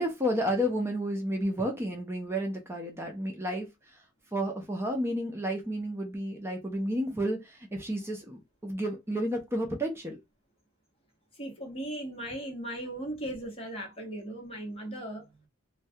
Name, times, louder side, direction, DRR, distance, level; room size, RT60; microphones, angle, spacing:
voice 1, 0.0-3.7 4.3-10.2, equal, 15° right, 0.5 m, -31 dB
voice 2, 11.4-15.3, right 1 dB, 30° left, 0.9 m, -37 dB
2.2 x 2.2 x 2.6 m
head